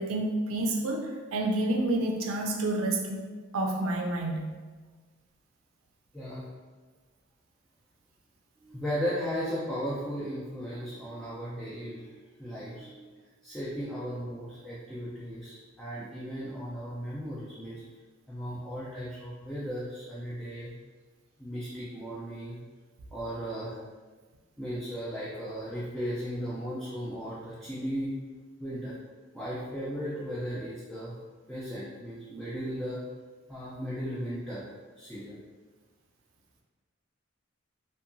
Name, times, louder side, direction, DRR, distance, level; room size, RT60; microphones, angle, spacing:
voice 1, 0.0-3.3 3.5-4.6, right 1 dB, 75° right, 2 dB, 0.4 m, -29 dB
voice 2, 6.1-6.5 8.6-17.8 18.3-20.7 21.4-22.6 23.1-23.8 24.6-28.1 28.6-29.0 29.3-31.1 31.5-33.0 33.5-34.7 35.0-35.4, equal, ahead, -10 dB, 0.4 m, -36 dB
2.7 x 2.2 x 2.5 m, 1.4 s
head